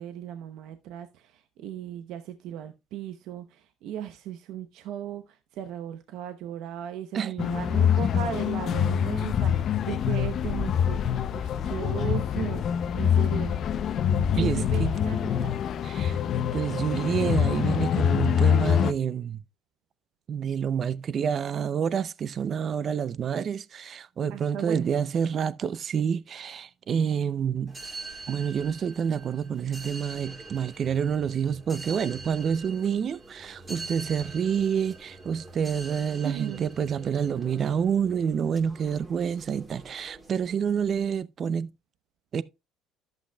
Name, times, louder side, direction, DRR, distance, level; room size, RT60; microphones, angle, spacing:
voice 1, 0.0-13.6 14.3-15.5 24.3-24.8 36.2-36.7, right 10 dB, 70° right, 0.8 m, -37 dB
voice 2, 7.1-7.5 14.4-15.0 15.8-16.2 16.5-19.4 20.3-27.8 28.3-41.7 42.3-42.4, right 7 dB, 45° right, 0.5 m, -28 dB
sound 1, 7.4-18.9, left 8 dB, 55° left, 0.6 m, -25 dB
sound 2, 27.7-41.2, right 3 dB, 25° right, 2.5 m, -44 dB
11.5 x 8.0 x 2.3 m
supercardioid pair, 85°, 0 cm